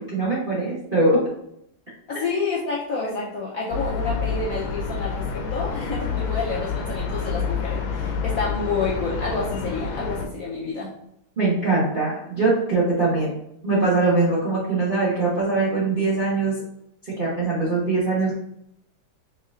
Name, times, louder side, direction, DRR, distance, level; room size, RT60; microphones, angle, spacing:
voice 1, 0.1-1.1 2.1-2.2 11.4-13.4 13.6-16.6 17.0-18.3, right 3 dB, 45° right, -8 dB, 0.6 m, -22 dB
voice 2, 2.1-10.9, left 4 dB, 65° left, -6 dB, 0.9 m, -29 dB
sound 1, 3.7-10.2, left 5 dB, 80° left, 1.4 m, -28 dB
4.3 x 3.3 x 2.4 m, 0.75 s
omnidirectional pair, 2.2 m